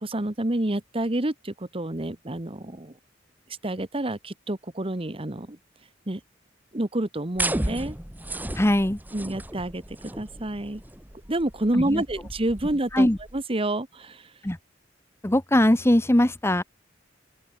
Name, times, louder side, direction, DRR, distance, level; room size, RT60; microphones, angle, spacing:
voice 1, 0.0-2.9 3.6-5.6 6.1-6.2 6.7-8.0 9.1-9.8 10.2-10.8 11.3-13.1 13.3-14.2, right 1 dB, 30° right, 1.4 m, -28 dB
sound 1, 7.3-13.4, right 1 dB, 10° right, 1.8 m, -34 dB
voice 2, 8.5-9.0 11.7-12.0 12.9-13.2 14.4-14.6 15.2-16.6, left 1 dB, 15° left, 1.0 m, -21 dB
open air
head